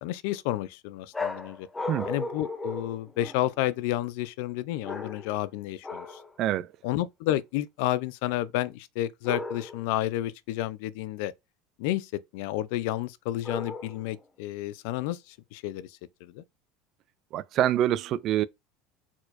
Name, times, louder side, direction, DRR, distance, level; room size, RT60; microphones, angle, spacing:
voice 1, 0.0-1.7 2.1-6.2 6.8-11.3 11.8-16.4, left 14 dB, 70° left, 0.4 m, -31 dB
sound 1, 1.1-3.6 4.8-5.5 5.8-6.3 9.2-9.9 13.4-14.2, left 3 dB, 10° left, 0.6 m, -36 dB
voice 2, 6.4-6.7 17.3-18.4, right 12 dB, 45° right, 0.3 m, -25 dB
4.4 x 4.3 x 2.5 m
cardioid pair, 145°, 0 cm